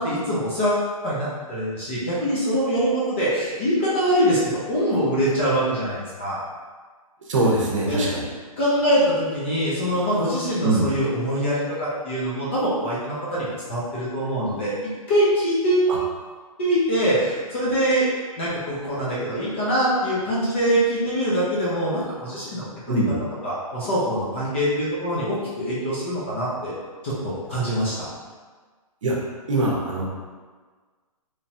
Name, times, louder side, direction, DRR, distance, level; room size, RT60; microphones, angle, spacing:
voice 1, 0.0-4.4 4.7-6.4 7.8-8.1 8.6-14.7 15.1-15.9 16.6-18.1 18.4-23.0 23.4-26.7 27.0-28.1, equal, 20° left, -8 dB, 0.4 m, -23 dB
voice 2, 7.3-8.2 10.6-10.9 15.9-16.0 22.9-23.2 29.0-29.2 29.5-30.0, right 2 dB, 55° right, -2 dB, 0.7 m, -22 dB
3.0 x 2.2 x 2.7 m, 1.5 s
hypercardioid pair, 165°, 19 cm